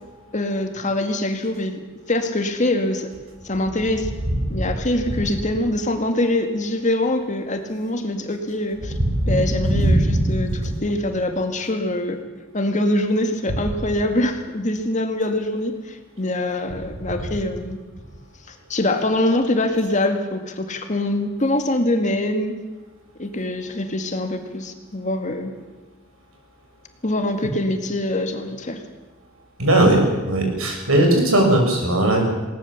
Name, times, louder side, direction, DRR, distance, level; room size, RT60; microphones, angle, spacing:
voice 1, 0.3-1.8 2.1-3.1 3.4-4.1 4.5-8.9 9.3-12.2 12.5-17.8 18.5-22.5 23.2-25.5 27.0-28.8, left 1 dB, 35° left, 6 dB, 2.0 m, -24 dB
voice 2, 9.6-10.3 29.6-32.2, right 1 dB, 85° right, 2 dB, 6.1 m, -18 dB
20.0 x 19.0 x 7.2 m, 1.2 s
head